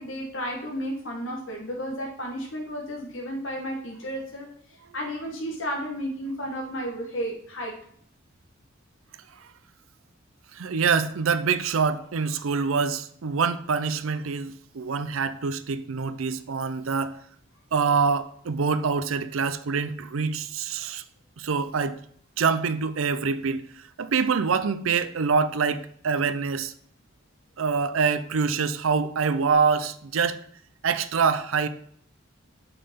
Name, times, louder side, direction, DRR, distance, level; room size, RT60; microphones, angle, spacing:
voice 1, 0.0-4.5 4.9-7.7, equal, 70° left, 1.5 m, -32 dB
voice 2, 10.5-17.2 17.7-21.0 21.4-22.0 22.4-26.7 27.6-30.4 30.8-31.7, right 5 dB, 85° right, 0.6 m, -25 dB
6.6 x 5.8 x 5.0 m
head